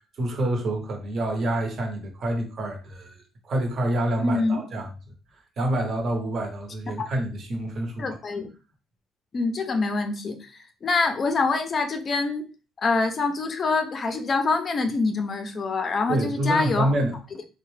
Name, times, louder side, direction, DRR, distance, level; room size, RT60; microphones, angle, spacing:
voice 1, 0.2-4.9 5.6-8.1 16.1-17.2, right 1 dB, 40° right, 0.8 m, -27 dB
voice 2, 4.2-4.6 8.0-8.5 9.3-10.5 10.8-12.5 12.8-16.9, left 3 dB, 30° left, 0.4 m, -25 dB
3.6 x 2.1 x 3.2 m
cardioid pair, 165°, 0 cm